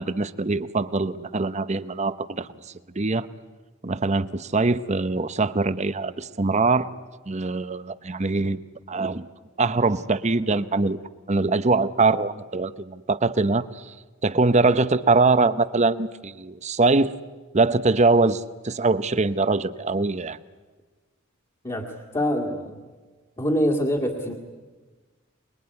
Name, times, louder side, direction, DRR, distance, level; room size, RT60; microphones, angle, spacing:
voice 1, 0.0-2.5 2.9-3.3 3.8-6.9 7.3-8.6 8.9-9.3 9.6-11.0 11.3-13.9 14.2-17.1 17.5-20.4, right 3 dB, 35° right, 14 dB, 0.8 m, -22 dB
voice 2, 21.6-22.8 23.4-24.3, equal, 25° left, -1 dB, 2.1 m, -25 dB
25.0 x 21.5 x 9.7 m, 1.3 s
head